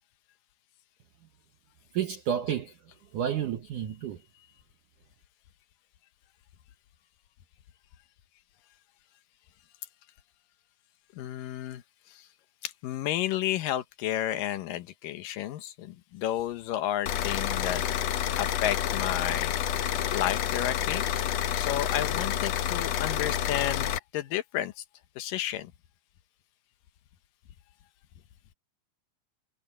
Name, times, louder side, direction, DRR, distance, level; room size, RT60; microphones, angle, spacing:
voice 1, 1.9-2.8 3.1-4.2, right 9 dB, 65° right, 2.4 m, -30 dB
voice 2, 11.2-12.3 12.6-17.8 18.4-19.5 20.1-21.0 21.6-24.8 25.2-25.7, left 12 dB, 70° left, 2.4 m, -32 dB
sound 1, 17.1-24.0, left 10 dB, 90° left, 1.4 m, -29 dB
omnidirectional pair, 4.6 m